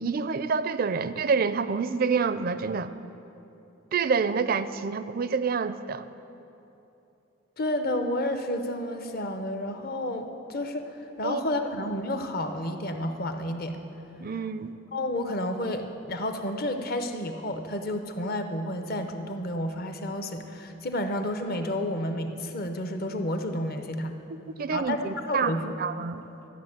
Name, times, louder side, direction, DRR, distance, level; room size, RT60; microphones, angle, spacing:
voice 1, 0.0-2.9 3.9-6.1 11.2-11.4 14.2-14.7 24.3-26.2, right 5 dB, 45° right, 13 dB, 0.4 m, -27 dB
voice 2, 7.6-13.8 14.9-24.2 24.7-25.7, left 1 dB, 45° left, 7 dB, 0.8 m, -31 dB
13.0 x 6.8 x 8.7 m, 3.0 s
head